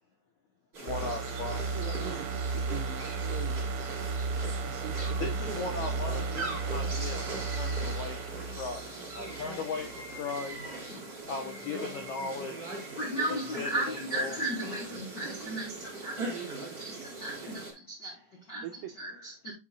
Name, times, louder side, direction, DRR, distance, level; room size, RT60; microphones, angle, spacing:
Seaside country path with bird-song and walkers, 0.7-17.7, right 3 dB, 30° right, 3.2 m, -40 dB
voice 1, 0.8-2.1 5.2-6.4 6.7-8.2 8.5-8.8 9.1-10.7 11.3-12.7 13.6-13.7 14.1-14.3, left 4 dB, 85° left, 1.6 m, -37 dB
sound 1, 0.9-9.5 9.9-10.0, right 4 dB, 70° right, 2.4 m, -34 dB
voice 2, 1.7-3.6 4.6-6.5 18.6-18.9, right 9 dB, 90° right, 2.0 m, -43 dB
voice 3, 10.9-11.2 13.0-18.7 18.9-19.5, right 1 dB, 60° left, 1.1 m, -36 dB
8.7 x 6.4 x 2.5 m
omnidirectional pair, 4.9 m